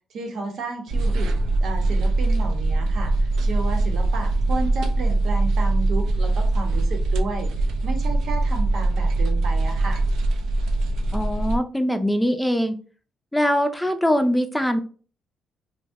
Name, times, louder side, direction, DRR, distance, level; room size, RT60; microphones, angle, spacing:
voice 1, 0.1-1.3 1.6-7.5 7.8-10.0, right 3 dB, 65° right, 3 dB, 0.8 m, -32 dB
sound 1, 0.9-11.6, right 2 dB, 85° right, 0.4 m, -22 dB
voice 2, 11.1-12.8 13.3-14.8, equal, 5° left, 8 dB, 0.4 m, -22 dB
2.7 x 2.0 x 3.4 m, 0.40 s
cardioid pair, 90°, 0 cm